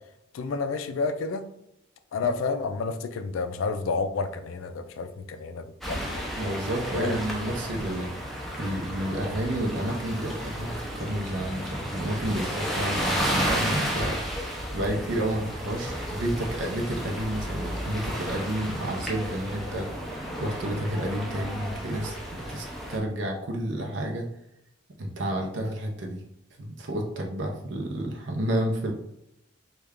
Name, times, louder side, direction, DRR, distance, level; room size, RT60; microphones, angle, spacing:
voice 1, 0.3-1.5 2.1-6.2 6.9-7.2, left 4 dB, 85° left, 9 dB, 0.4 m, -30 dB
sound 1, 5.8-23.0, equal, ahead, 0.5 m, -32 dB
voice 2, 6.4-14.2 14.7-19.9 20.4-24.3 25.0-26.2 26.6-28.9, right 1 dB, 65° right, 2 dB, 0.6 m, -30 dB
3.2 x 2.3 x 3.5 m, 0.80 s
head